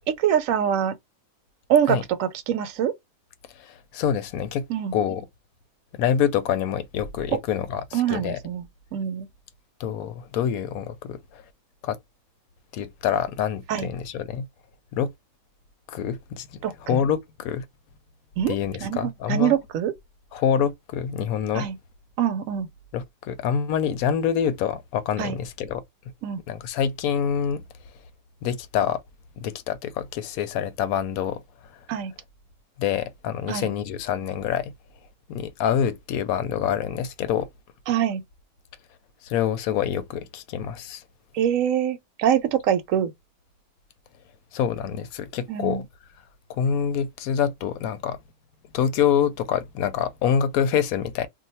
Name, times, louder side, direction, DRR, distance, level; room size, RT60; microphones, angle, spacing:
voice 1, 0.2-1.0 1.7-2.9 4.7-4.9 7.3-7.4 7.9-8.7 8.9-9.3 13.7-13.9 16.6-17.0 18.4-18.5 18.8-19.9 21.5-21.8 22.2-22.7 25.2-25.4 26.2-26.4 31.9-32.1 33.5-33.7 37.9-38.2 41.3-43.1 45.5-45.8, right 9 dB, 75° right, 0.9 m, -24 dB
voice 2, 3.6-4.6 4.9-5.3 5.9-8.4 9.8-11.4 11.8-12.0 12.7-14.5 14.9-15.1 15.9-17.6 18.5-19.6 20.3-21.7 22.9-25.8 26.5-27.6 28.4-29.0 29.4-31.4 32.8-34.7 35.3-37.5 39.2-41.0 44.5-45.9 46.5-48.2 48.7-51.3, left 8 dB, 85° left, 1.0 m, -26 dB
2.5 x 2.2 x 4.0 m
omnidirectional pair, 1.5 m